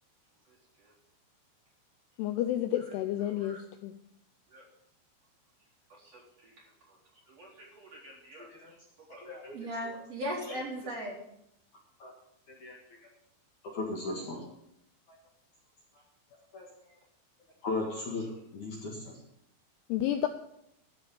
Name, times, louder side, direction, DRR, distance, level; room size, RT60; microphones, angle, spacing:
voice 1, 0.5-0.9 2.8-2.9 3.3-3.6 4.5-4.6 6.0-6.5 6.9-7.0 7.3-8.5 9.0-9.3 9.5-11.2 17.9-18.0, equal, 35° right, -4 dB, 4.5 m, -40 dB
voice 2, 2.2-3.9 19.9-20.3, left 12 dB, 80° left, 8 dB, 2.5 m, -30 dB
voice 3, 8.4-8.7 9.2-9.6 9.8-10.0 10.4-10.6 12.0-12.1 12.5-12.8 13.6-14.5 16.5-16.6 17.6-18.3 18.5-19.2, left 2 dB, 55° left, -2 dB, 2.7 m, -37 dB
14.5 x 5.4 x 8.1 m, 0.76 s
omnidirectional pair, 5.1 m